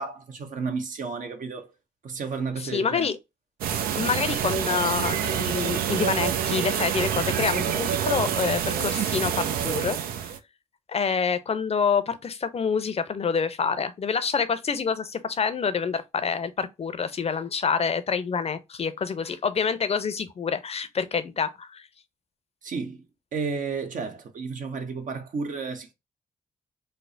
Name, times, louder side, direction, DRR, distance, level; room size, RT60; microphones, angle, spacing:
voice 1, 0.0-1.7 2.0-3.1 22.6-23.1 23.3-25.9, right 4 dB, 60° right, 0.8 m, -32 dB
voice 2, 2.6-3.2 4.0-10.0 10.9-21.9, left 6 dB, 45° left, 0.6 m, -27 dB
sound 1, 3.6-10.4, right 9 dB, 80° right, 0.4 m, -27 dB
3.3 x 2.0 x 3.9 m
supercardioid pair, 45°, 15 cm